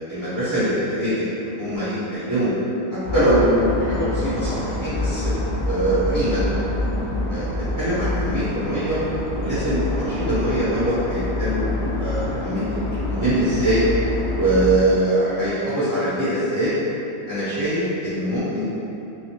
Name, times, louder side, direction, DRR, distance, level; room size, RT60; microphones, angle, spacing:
voice 1, 0.0-2.5 3.1-5.3 5.6-6.6 7.3-7.5 7.8-9.0 9.4-13.8 14.3-16.8 17.3-18.6, right 1 dB, 20° right, -14 dB, 0.6 m, -23 dB
sound 1, 3.0-14.7, left 2 dB, 60° left, 0.7 m, -26 dB
3.3 x 2.6 x 2.9 m, 2.9 s
omnidirectional pair, 1.6 m